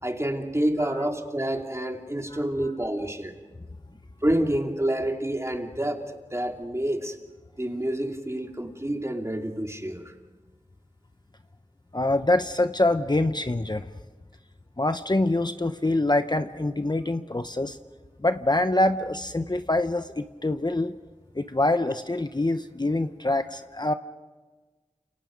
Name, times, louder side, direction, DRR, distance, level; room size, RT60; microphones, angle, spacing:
voice 1, 0.0-3.3 4.2-7.2 7.6-10.1, right 1 dB, 20° right, 3 dB, 2.7 m, -28 dB
voice 2, 11.9-13.9 14.8-17.8 18.2-21.0 21.3-23.9, left 2 dB, 35° left, 9 dB, 0.9 m, -25 dB
30.0 x 28.0 x 5.3 m, 1.3 s
wide cardioid pair, 50°, 13 cm